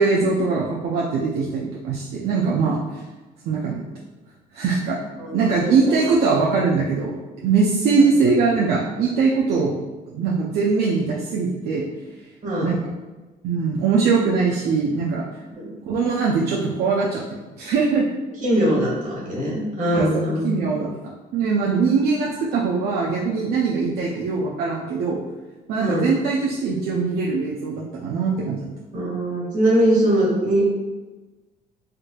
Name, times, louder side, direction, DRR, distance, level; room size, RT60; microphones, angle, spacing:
voice 1, 0.0-2.8 3.4-3.9 4.5-5.0 5.3-9.7 10.1-11.9 12.6-12.8 13.4-15.2 15.9-18.1 19.9-20.1 20.4-20.9 21.3-25.2 25.7-28.6, right 4 dB, 70° right, -3 dB, 0.5 m, -21 dB
voice 2, 5.2-5.9 8.0-8.1 12.4-12.8 15.5-15.7 18.4-20.6 25.8-26.1 28.9-30.6, right 1 dB, 45° right, -5 dB, 1.5 m, -22 dB
3.7 x 2.5 x 2.3 m, 1.2 s
cardioid pair, 110°, 17 cm